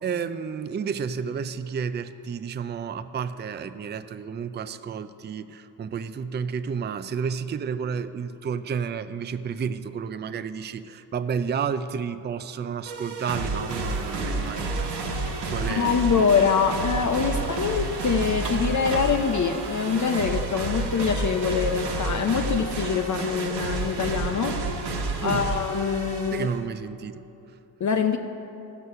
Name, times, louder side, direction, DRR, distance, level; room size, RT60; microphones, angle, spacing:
voice 1, 0.0-14.9 15.5-16.1 17.2-17.4 25.2-25.5 26.3-27.3, right 6 dB, 25° right, 11 dB, 0.4 m, -31 dB
sound 1, 12.9-26.6, right 3 dB, 75° right, 1.3 m, -30 dB
sound 2, 13.7-23.5, right 3 dB, 45° right, 1.3 m, -41 dB
voice 2, 15.7-24.6 25.2-26.5 27.8-28.2, left 6 dB, 45° left, 5 dB, 0.6 m, -24 dB
14.0 x 6.4 x 5.5 m, 2.9 s
cardioid pair, 70°, 41 cm